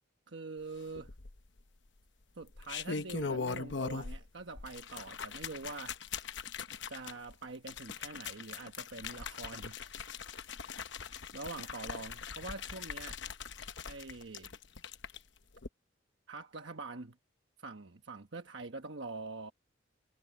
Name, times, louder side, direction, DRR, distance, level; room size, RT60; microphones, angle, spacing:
voice 1, 0.3-1.1 2.4-6.0 6.9-10.8 11.3-13.2 13.9-14.5 16.3-17.1 17.6-19.5, right 3 dB, 65° right, 1.2 m, -45 dB
sound 1, 1.0-1.6 2.4-4.3 4.6-15.2 15.6-15.7, left 5 dB, 60° left, 1.0 m, -41 dB
head